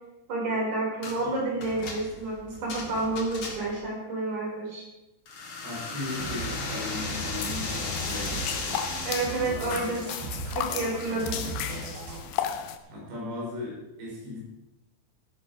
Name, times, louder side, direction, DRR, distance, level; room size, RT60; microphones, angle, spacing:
voice 1, 0.3-4.8 9.0-10.0 10.5-11.4, right 2 dB, 50° right, -2 dB, 6.0 m, -29 dB
sound 1, 1.0-1.2 1.6-3.9 5.3-9.5, left 3 dB, 45° left, 1.9 m, -35 dB
voice 2, 5.6-8.5 11.2-11.9 12.9-14.4, left 2 dB, 85° right, -4 dB, 7.4 m, -37 dB
sound 2, 6.2-12.2, right 3 dB, 65° right, 4.6 m, -38 dB
sound 3, 7.3-12.8, left 10 dB, 80° left, 2.1 m, -35 dB
15.5 x 9.9 x 5.0 m, 0.96 s
omnidirectional pair, 5.0 m